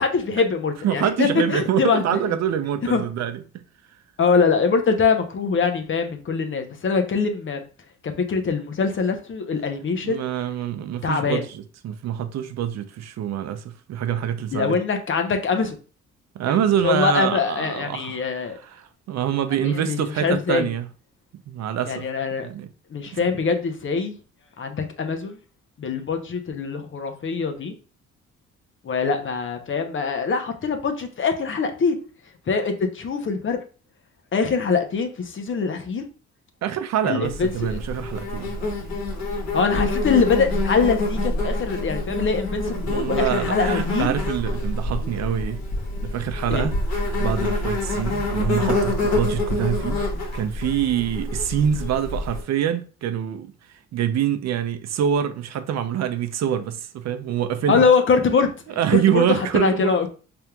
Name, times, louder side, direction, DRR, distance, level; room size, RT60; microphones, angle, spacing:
voice 1, 0.0-2.2 2.9-3.0 4.2-7.6 8.0-10.2 11.0-11.4 14.5-15.8 16.5-16.6 16.8-18.6 19.6-20.7 21.9-22.5 22.9-24.1 24.6-25.4 25.8-27.7 28.8-32.0 32.5-33.6 34.3-36.1 37.0-37.8 39.5-44.1 45.0-45.1 46.5-46.7 57.7-60.1, left 5 dB, 40° left, 0.8 m, -23 dB
voice 2, 0.8-3.4 10.0-14.8 16.3-20.9 21.5-22.1 22.4-22.7 23.1-23.4 36.6-38.5 42.9-45.6 46.0-46.7 47.2-50.0 50.3-57.9 58.8-60.1, right 9 dB, 60° right, 0.5 m, -25 dB
Insect, 37.2-52.4, left 2 dB, 65° left, 1.4 m, -26 dB
4.3 x 3.5 x 2.3 m
cardioid pair, 90°, 30 cm